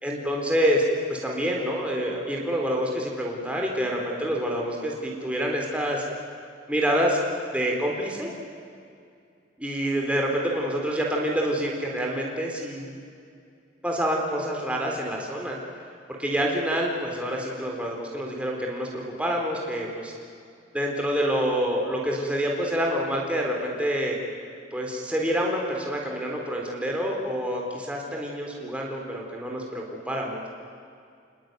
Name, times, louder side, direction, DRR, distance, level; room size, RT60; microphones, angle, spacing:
voice 1, 0.0-6.1 6.7-7.2 7.5-8.3 9.6-12.9 13.8-15.6 16.1-20.1 20.7-24.2 24.7-30.4, equal, 5° right, -1 dB, 4.2 m, -27 dB
30.0 x 20.5 x 9.5 m, 2.3 s
head